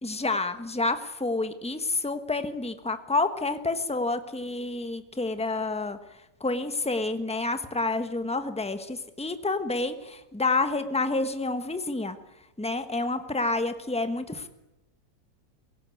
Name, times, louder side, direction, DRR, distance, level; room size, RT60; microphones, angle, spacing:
voice 1, 0.0-12.2 12.6-14.5, left 3 dB, 5° left, 9 dB, 1.1 m, -29 dB
23.5 x 17.0 x 9.4 m, 0.92 s
omnidirectional pair, 1.9 m